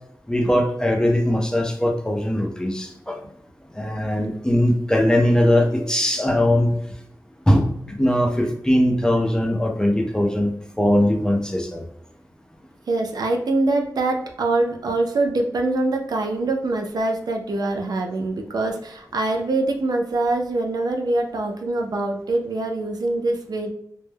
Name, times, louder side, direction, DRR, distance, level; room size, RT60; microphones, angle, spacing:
voice 1, 0.3-3.2 3.7-6.7 7.5-11.8, left 1 dB, 10° left, 2 dB, 0.4 m, -20 dB
voice 2, 12.9-23.7, right 2 dB, 70° right, 3 dB, 0.4 m, -24 dB
2.2 x 2.0 x 3.2 m, 0.73 s
wide cardioid pair, 105°, 7 cm